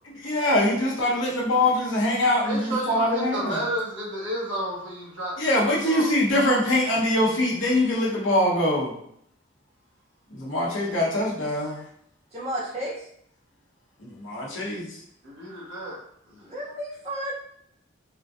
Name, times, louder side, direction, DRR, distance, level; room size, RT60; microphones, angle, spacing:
voice 1, 0.1-3.6 5.4-8.9 10.3-11.8 14.0-15.0, left 1 dB, 70° left, -4 dB, 0.9 m, -23 dB
voice 2, 2.4-6.2 15.2-16.0 16.3-16.4, right 1 dB, 65° right, -6 dB, 1.3 m, -32 dB
voice 3, 12.3-13.0 16.4-17.3, right 1 dB, 30° right, -7 dB, 1.3 m, -32 dB
3.6 x 2.6 x 2.4 m, 0.69 s
head